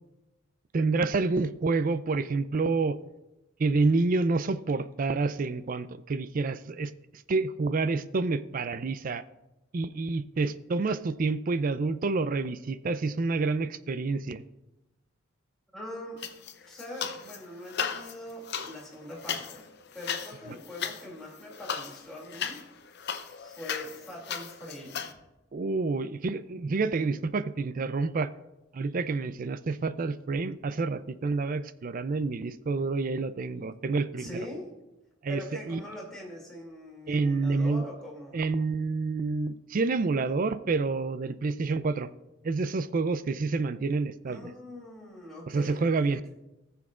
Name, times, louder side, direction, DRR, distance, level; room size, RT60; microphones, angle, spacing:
voice 1, 0.7-3.0 3.6-9.2 9.7-14.4 25.5-28.3 28.7-34.4 35.2-35.4 35.7-35.8 37.1-37.8 38.3-42.1 42.4-44.5 45.5-46.2, right 3 dB, 45° right, 14 dB, 0.4 m, -28 dB
voice 2, 15.7-16.2 16.7-19.7 19.9-22.6 23.4-25.2 34.2-34.7 35.3-38.4 44.3-46.2, left 1 dB, 5° left, -4 dB, 2.5 m, -42 dB
sound 1, 16.2-17.4 17.7-25.1, left 7 dB, 55° left, 0.7 m, -36 dB
19.0 x 7.0 x 2.4 m, 0.99 s
head